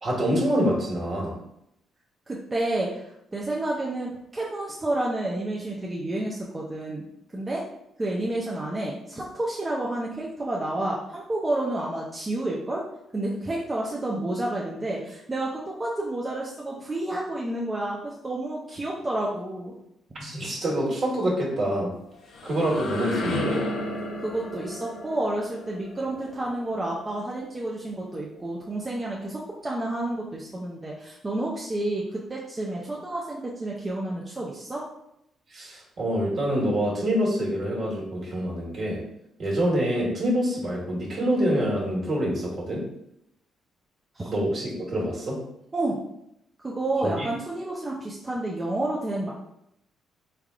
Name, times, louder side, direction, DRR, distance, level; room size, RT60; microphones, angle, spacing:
voice 1, 0.0-1.4 20.1-21.9 22.4-23.6 35.5-39.0 39.4-42.8 44.2-45.4 47.0-47.3, equal, 50° right, -3 dB, 1.4 m, -26 dB
voice 2, 2.3-7.0 7.3-7.6 8.0-12.8 13.1-19.8 24.2-34.8 44.1-44.3 45.7-46.0 46.6-49.3, right 1 dB, 25° right, -4 dB, 0.5 m, -30 dB
sound 1, 22.0-27.7, left 1 dB, 75° left, 0.6 m, -34 dB
3.6 x 3.3 x 2.3 m, 0.79 s
cardioid pair, 90°, 0 cm